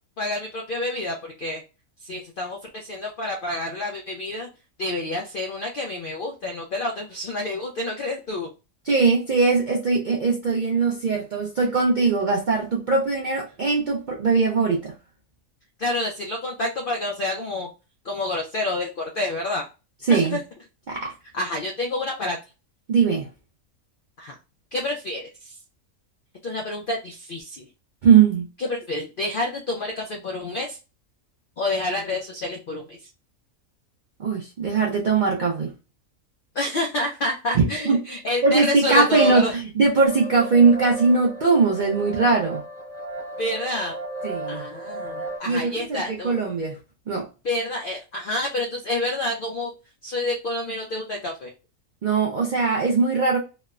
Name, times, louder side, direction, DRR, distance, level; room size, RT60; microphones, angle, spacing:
voice 1, 0.2-1.6 2.0-4.5 4.8-8.5 15.8-17.7 18.0-19.6 20.1-20.4 21.3-22.4 24.2-24.4 24.7-25.6 26.4-27.7 28.6-30.8 31.6-33.1 36.5-39.6 43.4-44.0 44.5-46.3 47.4-49.7 50.0-51.5, left 2 dB, 70° left, 0.5 m, -28 dB
voice 2, 8.9-14.9 20.1-20.4 20.9-21.1 22.9-23.3 28.0-28.5 34.2-35.7 37.5-38.0 38.4-42.6 44.2-44.7 45.5-46.8 47.1-47.3 52.0-53.4, right 4 dB, 70° right, 0.4 m, -20 dB
sound 1, 40.1-45.4, right 2 dB, 40° right, 0.9 m, -34 dB
3.1 x 2.0 x 2.3 m
omnidirectional pair, 1.4 m